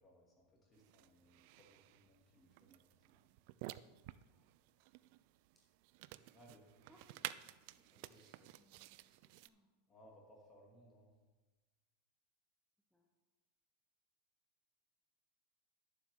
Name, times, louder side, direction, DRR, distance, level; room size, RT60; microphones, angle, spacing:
voice 1, 0.0-3.2 6.3-6.6 7.9-8.5 9.9-11.1, equal, 20° left, -2 dB, 2.5 m, -65 dB
sound 1, 0.7-9.5, right 16 dB, 60° right, 0.3 m, -53 dB
voice 2, 6.9-9.7 12.9-13.1, equal, 5° left, -1 dB, 1.0 m, -72 dB
11.0 x 7.2 x 3.7 m, 1.2 s
supercardioid pair, 130°, 0 cm